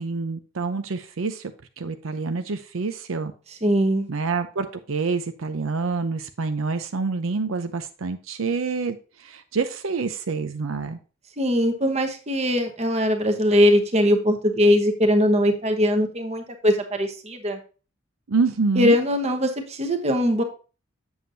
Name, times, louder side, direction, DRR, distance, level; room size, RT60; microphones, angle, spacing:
voice 1, 0.0-1.5 1.8-3.3 4.1-11.0 18.3-19.0, right 4 dB, 85° right, 8 dB, 0.6 m, -27 dB
voice 2, 3.6-4.1 11.4-17.6 18.8-20.4, equal, 30° right, 5 dB, 1.0 m, -21 dB
7.7 x 7.2 x 2.7 m, 0.35 s
head